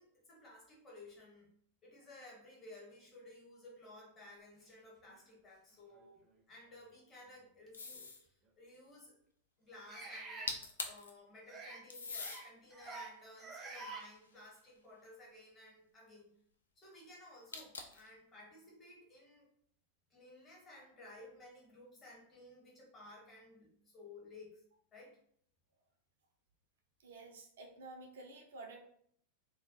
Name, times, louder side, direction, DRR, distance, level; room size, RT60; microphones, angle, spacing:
voice 1, 0.0-1.5 1.8-9.1 9.6-16.3 16.7-19.5 20.1-24.6 24.9-25.2, left 2 dB, 25° left, -4 dB, 1.0 m, -56 dB
sound 1, 5.1-5.2 5.9-6.1 7.7-7.8 9.9-10.5 11.4-11.8 12.1-12.4 12.7-13.1 13.4-14.0, right 3 dB, 15° right, 0.6 m, -47 dB
sound 2, 7.7-8.3 10.2-10.3 10.5-11.1 11.9-12.4 13.1-14.6 17.5-18.1, left 4 dB, 70° left, 0.3 m, -43 dB
voice 2, 27.0-28.8, right 3 dB, 60° right, 2 dB, 0.5 m, -51 dB
2.2 x 2.1 x 2.8 m, 0.66 s
figure-of-eight pair, 90°, 0 cm